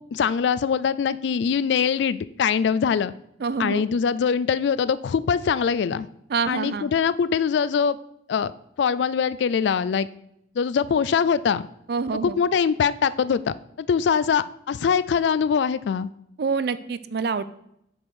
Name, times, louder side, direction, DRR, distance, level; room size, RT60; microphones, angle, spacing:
voice 1, 0.0-3.1 3.6-6.1 6.5-8.0 8.3-8.5 8.8-10.1 10.6-11.7 12.2-13.5 13.9-16.1, left 6 dB, 70° left, 17 dB, 0.3 m, -23 dB
voice 2, 3.4-3.8 6.3-6.9 11.9-12.4 16.4-17.4, right 5 dB, 55° right, 14 dB, 0.4 m, -26 dB
5.3 x 4.8 x 6.0 m, 0.76 s
head